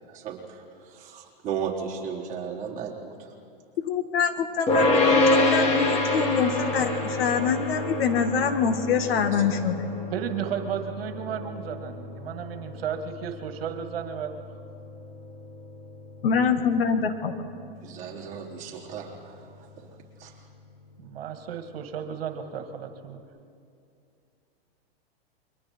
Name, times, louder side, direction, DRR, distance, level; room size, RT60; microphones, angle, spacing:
voice 1, 0.1-3.1 9.3-9.6 17.8-19.9 20.2-20.3, right 7 dB, 25° right, -4 dB, 3.8 m, -36 dB
voice 2, 3.8-9.9 16.2-17.5, left 6 dB, 70° left, 8 dB, 1.9 m, -25 dB
sound 1, 4.7-16.0, left 2 dB, 20° left, 2.2 m, -27 dB
voice 3, 10.1-14.3 21.0-23.2, right 8 dB, 70° right, 6 dB, 1.9 m, -33 dB
28.5 x 23.0 x 4.5 m, 2.5 s
hypercardioid pair, 145°, 30 cm